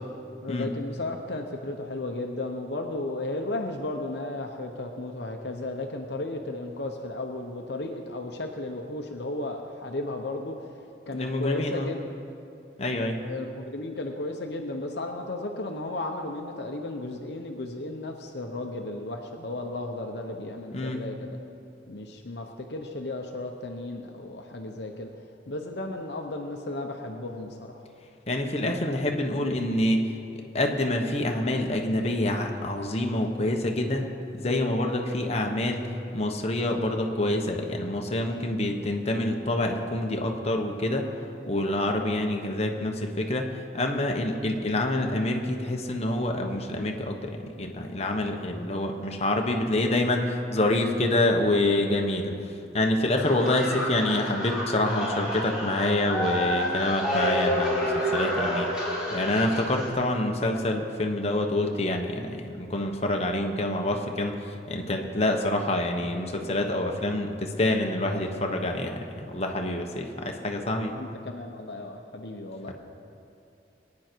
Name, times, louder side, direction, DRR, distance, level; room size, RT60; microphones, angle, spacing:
voice 1, 0.4-10.5 11.1-12.0 13.2-21.4 21.9-25.1 25.5-27.8 29.4-29.8 70.9-72.7, left 2 dB, 70° left, 3 dB, 1.0 m, -34 dB
voice 2, 11.1-11.9 12.8-13.2 20.7-21.0 28.3-30.0 30.3-34.1 34.4-35.9 36.1-41.0 41.5-52.3 52.7-58.7 59.1-70.9 72.7-72.8, left 1 dB, 35° left, 2 dB, 1.2 m, -27 dB
sound 1, 53.2-59.9, equal, 5° right, 4.2 m, -29 dB
23.0 x 9.6 x 4.6 m, 2.6 s
head